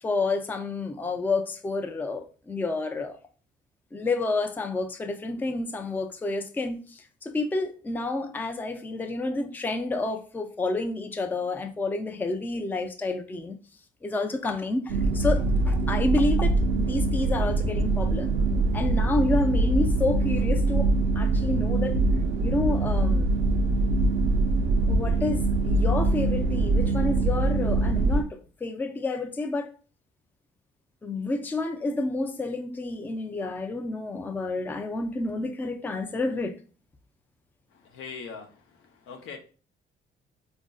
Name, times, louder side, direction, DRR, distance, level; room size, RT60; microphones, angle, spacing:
voice 1, 0.0-3.2 3.9-13.6 14.0-20.9 21.2-22.0 22.4-23.3 24.9-29.7 31.0-36.6, left 2 dB, 10° left, 0.3 m, -29 dB
sound 1, 14.9-28.2, right 2 dB, 75° right, 0.4 m, -23 dB
voice 2, 37.7-39.4, left 5 dB, 85° left, 0.7 m, -42 dB
4.1 x 2.5 x 2.3 m
cardioid pair, 90°, 20 cm